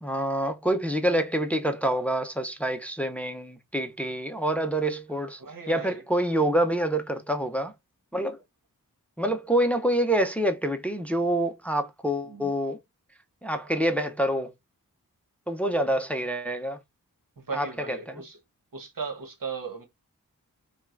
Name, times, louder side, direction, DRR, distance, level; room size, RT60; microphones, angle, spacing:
voice 1, 0.0-5.4 5.7-7.7 8.1-8.4 9.2-12.8 13.4-14.5 15.5-16.8 17.5-18.2, right 1 dB, 5° left, 0.6 m, -27 dB
voice 2, 5.4-6.0 12.3-12.5 17.5-18.4 18.7-19.9, right 5 dB, 70° right, 1.2 m, -36 dB
5.4 x 2.4 x 2.5 m
cardioid pair, 45°, 34 cm